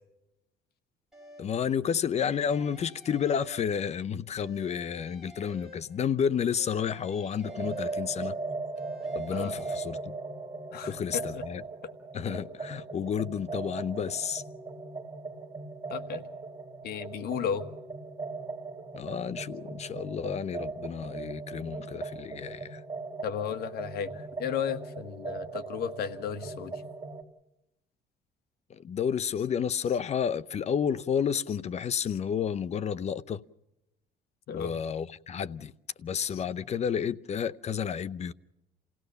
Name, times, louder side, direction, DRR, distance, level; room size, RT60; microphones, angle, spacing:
sound 1, 1.1-1.7 2.2-4.1 4.4-6.2 6.6-8.4 8.7-9.8, left 1 dB, 5° right, 7.2 m, -51 dB
voice 1, 1.4-8.4 9.1-10.1 10.9-11.6 12.1-14.4 18.9-22.8 28.7-33.4 34.5-35.7 36.0-38.3, left 7 dB, 40° left, 0.7 m, -31 dB
sound 2, 7.4-27.2, right 3 dB, 20° right, 2.4 m, -39 dB
voice 2, 10.7-11.2 15.9-16.3 16.8-17.6 23.2-26.8 34.5-34.7 36.3-36.4, left 7 dB, 65° left, 1.6 m, -34 dB
28.5 x 17.0 x 6.9 m
cardioid pair, 110°, 17 cm